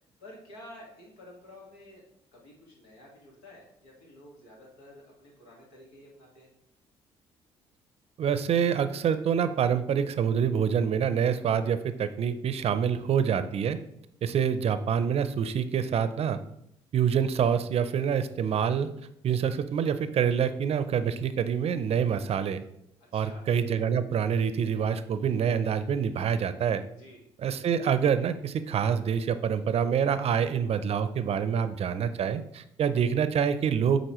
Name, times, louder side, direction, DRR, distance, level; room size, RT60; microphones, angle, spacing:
voice 1, 0.2-2.0 2.3-6.5 23.1-23.5 26.9-27.3, left 1 dB, 90° left, -2 dB, 1.7 m, -51 dB
voice 2, 8.2-13.8 14.2-16.4 16.9-18.9 19.2-22.6 23.1-26.8 27.4-34.0, right 7 dB, 55° right, 12 dB, 0.5 m, -26 dB
7.9 x 4.1 x 3.0 m, 0.76 s
supercardioid pair, 60°, 13 cm